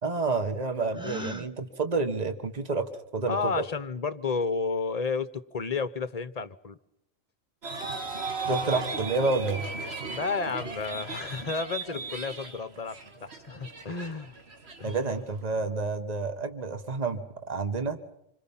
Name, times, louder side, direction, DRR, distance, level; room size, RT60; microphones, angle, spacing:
voice 1, 0.0-3.6 8.5-9.7 14.8-18.0, right 3 dB, 30° right, 8 dB, 1.8 m, -29 dB
Gasp, 0.9-1.5, equal, 5° right, 1.1 m, -37 dB
voice 2, 3.3-6.8 8.7-8.8 10.1-13.0 13.2-14.3 14.8-15.0, left 4 dB, 30° left, 13 dB, 1.1 m, -31 dB
sound 1, 7.6-15.5, right 4 dB, 50° right, 2.1 m, -37 dB
27.0 x 25.0 x 5.6 m, 0.79 s
omnidirectional pair, 1.3 m